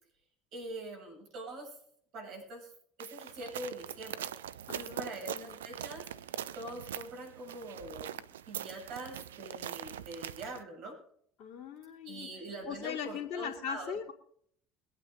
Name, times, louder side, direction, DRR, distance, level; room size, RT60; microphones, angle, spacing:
voice 1, 0.5-1.7 2.1-2.7 3.0-4.3 4.7-6.0 6.5-10.9 12.0-14.0, right 2 dB, 60° right, 0 dB, 7.6 m, -44 dB
sound 1, 3.0-10.6, right 10 dB, 85° right, 0.5 m, -42 dB
voice 2, 4.7-5.6 11.4-12.3 12.6-14.1, left 8 dB, 60° left, -3 dB, 2.4 m, -40 dB
23.0 x 9.0 x 3.9 m, 0.64 s
hypercardioid pair, 70°, 0 cm